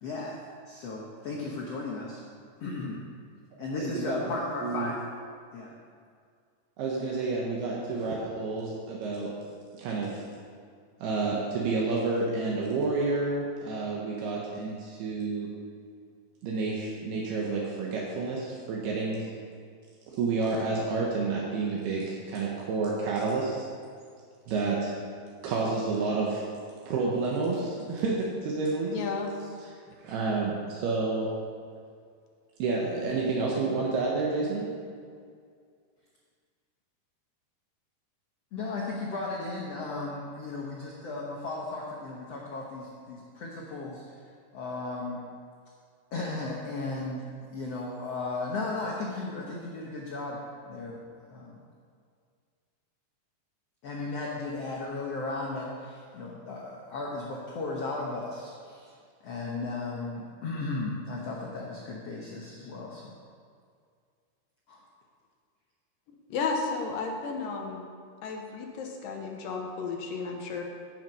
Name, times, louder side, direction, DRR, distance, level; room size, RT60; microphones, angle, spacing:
voice 1, 0.0-2.2 2.6-3.0 3.6-5.0 5.5-5.7 38.5-44.2 44.5-45.2 46.1-47.2 47.5-50.4 50.7-51.0 51.3-51.6 53.8-58.9 59.2-63.1 64.7-64.8, left 3 dB, 90° left, -3 dB, 1.3 m, -35 dB
voice 2, 3.8-4.4 4.6-4.9 6.8-9.3 9.7-10.2 11.0-15.5 16.4-19.3 20.1-23.6 24.5-24.9 25.4-26.4 26.9-28.9 30.0-31.3 32.6-34.7, right 3 dB, 75° right, -3 dB, 3.1 m, -29 dB
voice 3, 28.9-29.3 66.3-67.8 68.2-70.6, left 4 dB, 70° left, 1 dB, 2.4 m, -33 dB
14.5 x 6.1 x 5.4 m, 2.2 s
omnidirectional pair, 4.6 m